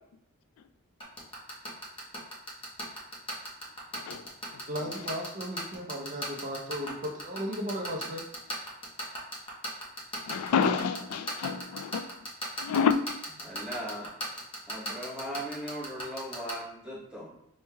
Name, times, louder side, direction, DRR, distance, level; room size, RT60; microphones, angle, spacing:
sound 1, 1.0-16.5, equal, 25° left, 0.9 m, -35 dB
voice 1, 4.7-8.3, equal, 35° right, 0.6 m, -35 dB
voice 2, 10.3-12.0 12.6-12.9, left 6 dB, 75° left, 0.3 m, -27 dB
voice 3, 13.4-14.1 14.7-17.3, equal, 5° right, 1.2 m, -38 dB
5.4 x 3.1 x 2.2 m
head